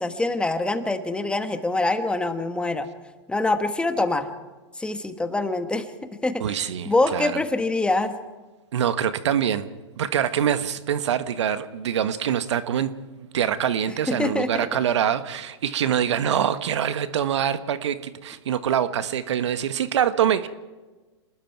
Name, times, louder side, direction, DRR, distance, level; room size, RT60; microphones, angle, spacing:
voice 1, 0.0-2.9 3.3-4.3 4.8-5.9 6.2-6.6 6.9-8.1 14.1-14.7, left 2 dB, 5° left, 8 dB, 1.4 m, -24 dB
voice 2, 6.4-7.3 8.7-9.7 10.0-12.9 13.3-20.5, right 9 dB, 70° right, 11 dB, 1.3 m, -24 dB
27.5 x 20.0 x 4.7 m, 1.2 s
hypercardioid pair, 125°, 15 cm